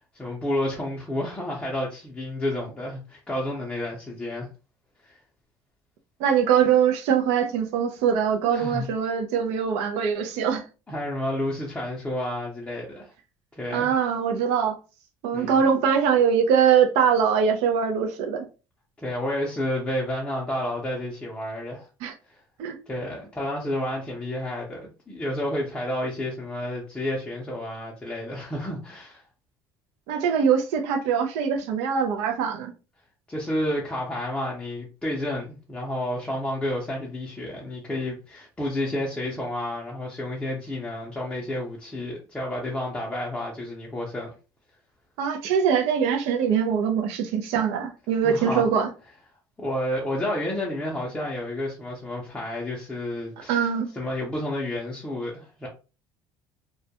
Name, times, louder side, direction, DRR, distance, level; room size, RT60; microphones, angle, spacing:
voice 1, 0.0-4.5 5.0-5.2 8.5-8.9 10.9-13.1 13.6-13.9 15.3-15.7 19.0-21.9 22.9-29.2 33.3-44.3 48.2-48.7 49.6-53.7 53.9-55.7, left 1 dB, 10° left, 0.5 m, -30 dB
voice 2, 6.2-10.6 13.7-14.8 15.2-18.5 22.0-22.1 22.6-22.8 30.1-32.7 45.2-48.9 53.5-53.9, right 7 dB, 85° right, 0.4 m, -22 dB
2.2 x 2.1 x 2.7 m
cardioid pair, 140°, 10 cm